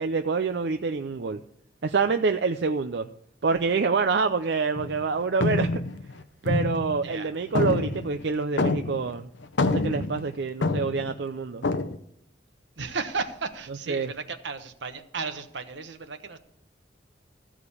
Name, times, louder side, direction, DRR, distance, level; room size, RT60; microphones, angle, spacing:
voice 1, 0.0-1.4 1.8-3.1 3.4-5.8 6.4-9.3 9.6-11.6 13.9-14.1, right 4 dB, 70° right, 7 dB, 0.5 m, -26 dB
sound 1, 4.8-5.1 5.4-7.2 7.5-9.2 9.4-11.1 11.6-12.0, left 3 dB, 90° left, 0.7 m, -27 dB
voice 2, 12.8-16.4, right 4 dB, 90° right, 8 dB, 1.1 m, -34 dB
14.5 x 5.0 x 8.4 m, 0.71 s
head